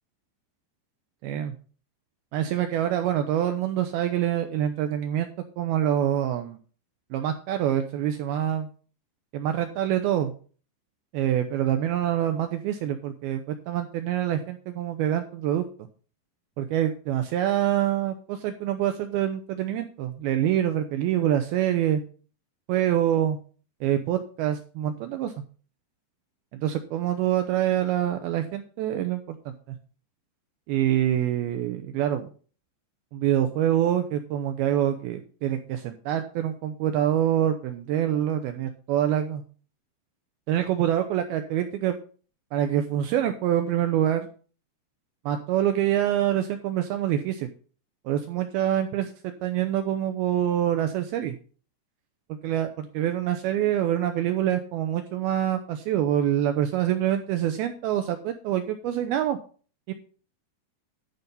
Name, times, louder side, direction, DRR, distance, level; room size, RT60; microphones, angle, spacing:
voice 1, 1.2-1.5 2.3-5.3 5.6-6.6 7.1-8.7 9.3-10.3 11.1-15.7 16.6-22.0 22.7-23.4 23.8-25.3 26.5-29.5 30.7-32.3 33.1-39.4 40.5-42.0 42.5-44.3 45.3-47.5 48.1-51.4 52.4-59.4 59.9-60.0, right 11 dB, 90° right, 7 dB, 2.2 m, -26 dB
11.5 x 5.4 x 5.3 m, 0.40 s
omnidirectional pair, 5.2 m